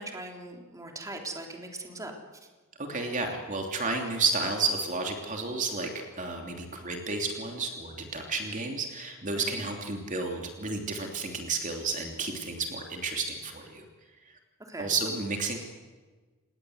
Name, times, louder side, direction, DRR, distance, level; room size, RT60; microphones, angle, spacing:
voice 1, 0.0-2.1 9.3-9.6 14.6-14.9, right 2 dB, 15° right, 2 dB, 3.4 m, -40 dB
voice 2, 2.8-5.9 6.2-13.8 14.8-15.6, right 3 dB, 35° right, 3 dB, 3.0 m, -31 dB
28.0 x 20.0 x 7.9 m, 1.3 s
head